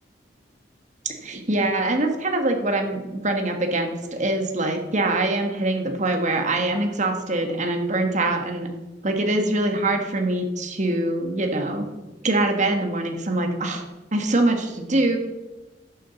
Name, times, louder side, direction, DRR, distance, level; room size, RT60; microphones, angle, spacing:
voice 1, 1.0-8.7 9.0-11.8 12.2-13.8 14.1-15.2, right 2 dB, 45° right, 4 dB, 1.6 m, -24 dB
10.5 x 6.9 x 7.0 m, 1.1 s
head